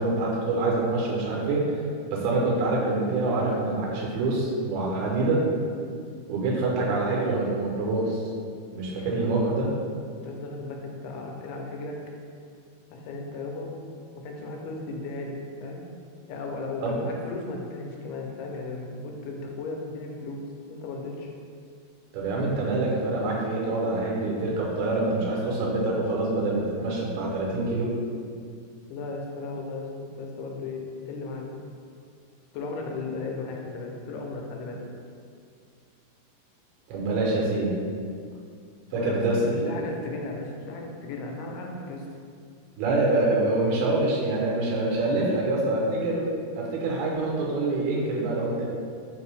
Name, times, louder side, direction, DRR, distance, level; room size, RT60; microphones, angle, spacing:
voice 1, 0.0-1.6 2.1-5.4 6.3-8.2 8.7-9.7 16.8-17.0 22.1-27.9 36.9-37.8 38.9-39.7 42.8-46.3 46.6-48.6, right 2 dB, 80° right, -3 dB, 2.7 m, -25 dB
voice 2, 10.2-12.0 12.9-13.7 14.1-15.8 16.3-21.3 28.9-31.5 32.5-34.8 38.9-42.0, left 3 dB, 85° left, 1 dB, 2.6 m, -35 dB
5.9 x 2.7 x 3.2 m, 2.2 s
omnidirectional pair, 4.6 m